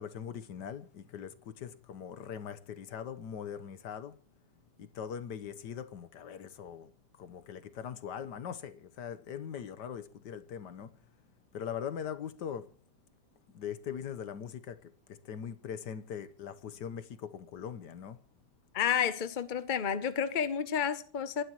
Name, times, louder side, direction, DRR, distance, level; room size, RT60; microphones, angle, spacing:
voice 1, 0.0-4.2 4.8-6.9 7.2-10.9 11.5-12.7 13.5-18.2, left 8 dB, 85° left, 1.6 m, -41 dB
voice 2, 18.7-21.4, left 8 dB, 45° left, 0.6 m, -30 dB
29.0 x 11.5 x 3.1 m
omnidirectional pair, 1.8 m